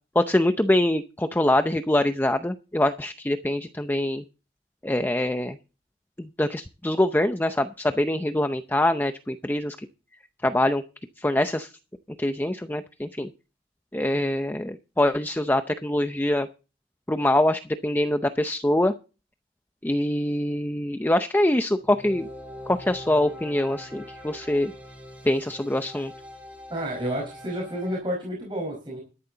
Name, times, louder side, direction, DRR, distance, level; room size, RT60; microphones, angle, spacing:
voice 1, 0.1-4.2 4.8-5.6 6.2-9.8 10.4-10.8 11.2-11.7 12.2-13.3 13.9-16.5 17.1-18.9 19.8-22.3 22.7-24.7 25.2-26.1, left 1 dB, 10° left, 9 dB, 0.6 m, -24 dB
sound 1, 21.8-28.0, left 1 dB, 10° right, 4.0 m, -43 dB
voice 2, 26.7-29.0, equal, 30° right, -2 dB, 4.9 m, -30 dB
13.0 x 11.0 x 3.9 m, 0.31 s
head